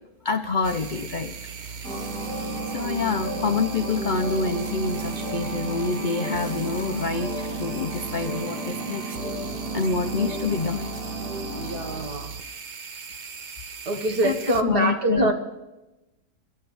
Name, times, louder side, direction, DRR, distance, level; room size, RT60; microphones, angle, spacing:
voice 1, 0.2-1.4 2.7-9.2 9.7-10.9 13.9-14.3 14.7-15.3, left 4 dB, 70° left, 8 dB, 0.4 m, -27 dB
sound 1, 0.6-14.6, right 5 dB, 45° right, 0.6 m, -38 dB
sound 2, 1.8-12.1, right 2 dB, 5° left, 4.3 m, -33 dB
voice 2, 11.6-12.4 13.9-15.3, right 1 dB, 80° right, 4 dB, 2.3 m, -25 dB
26.0 x 12.0 x 3.4 m, 0.99 s
omnidirectional pair, 1.7 m